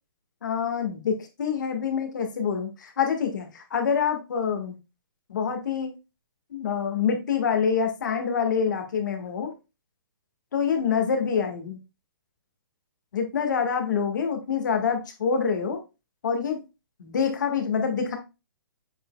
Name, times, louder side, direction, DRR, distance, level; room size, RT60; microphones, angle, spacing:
voice 1, 0.4-4.8 5.3-5.9 6.5-9.5 10.5-11.8 13.1-15.8 16.2-16.6 17.0-18.2, left 6 dB, 55° left, 5 dB, 1.7 m, -26 dB
7.7 x 5.3 x 2.3 m, 0.27 s
hypercardioid pair, 175°, 12 cm